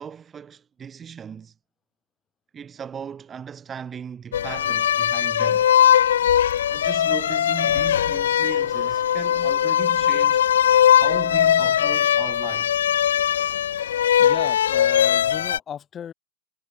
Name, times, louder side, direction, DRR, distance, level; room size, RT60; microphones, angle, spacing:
voice 1, 0.0-1.5 2.5-5.7 6.7-10.4 11.0-12.7, right 7 dB, 20° right, 0.9 m, -37 dB
sound 1, 4.3-15.6, left 10 dB, 65° left, 0.4 m, -20 dB
voice 2, 14.2-16.1, left 9 dB, 25° left, 2.6 m, -35 dB
figure-of-eight pair, 90°, 0 cm